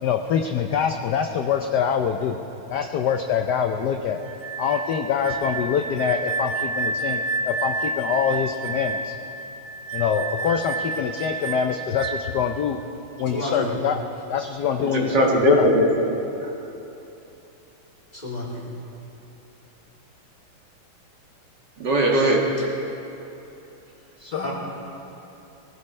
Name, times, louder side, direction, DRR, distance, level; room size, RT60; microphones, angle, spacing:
voice 1, 0.0-2.4 2.7-4.2 4.6-9.1 9.9-12.8 13.2-14.0 14.3-15.7 24.2-24.4, left 7 dB, 65° left, 5 dB, 1.1 m, -24 dB
sound 1, 4.2-12.5, right 3 dB, 80° right, 1.5 m, -30 dB
voice 2, 13.3-13.7 18.1-18.7 24.3-24.5, left 1 dB, 20° left, -6 dB, 3.5 m, -30 dB
voice 3, 14.8-16.5 21.8-22.6, right 1 dB, 55° right, -2 dB, 2.3 m, -20 dB
23.5 x 16.0 x 3.3 m, 3.0 s
omnidirectional pair, 2.3 m